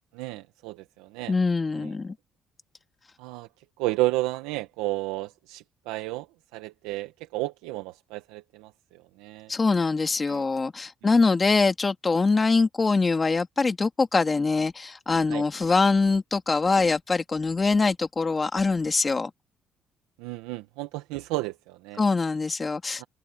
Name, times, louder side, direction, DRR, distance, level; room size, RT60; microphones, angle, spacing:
voice 1, 0.1-1.3 1.7-1.9 3.2-3.5 3.8-9.5 10.2-10.4 11.0-11.1 15.3-15.5 20.2-22.0 23.0-23.1, right 18 dB, 85° right, 1.4 m, -32 dB
voice 2, 1.3-2.1 9.5-19.3 22.0-23.1, left 4 dB, 30° left, 2.6 m, -23 dB
open air
supercardioid pair, 60°, 0 cm